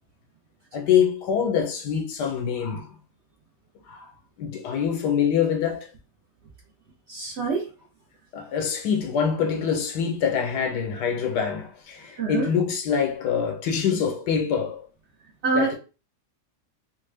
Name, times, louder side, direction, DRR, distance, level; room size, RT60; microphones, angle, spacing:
voice 1, 0.7-3.0 3.9-4.1 4.4-5.9 8.3-14.8 15.5-15.7, left 7 dB, 80° left, 1.4 m, -25 dB
voice 2, 7.1-7.7 12.2-12.5 15.4-15.7, right 4 dB, 55° right, 0.8 m, -25 dB
3.2 x 2.2 x 3.3 m
omnidirectional pair, 1.8 m